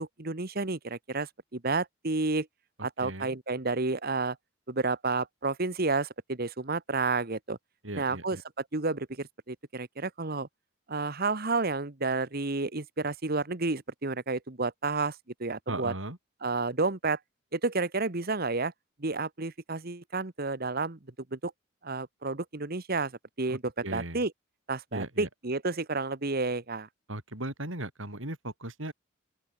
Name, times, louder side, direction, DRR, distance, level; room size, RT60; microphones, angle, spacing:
voice 1, 0.0-2.5 2.8-4.4 4.7-7.6 7.9-8.4 8.7-10.5 10.9-15.1 15.4-15.9 16.4-17.2 17.5-18.7 19.0-21.0 21.3-21.5 21.8-23.1 23.4-24.3 24.7-26.9, right 3 dB, 50° right, 1.4 m, -30 dB
voice 2, 3.0-3.4 7.8-8.4 15.7-16.2 23.5-24.2 24.9-25.3 27.1-28.9, right 1 dB, 70° right, 5.5 m, -37 dB
open air
head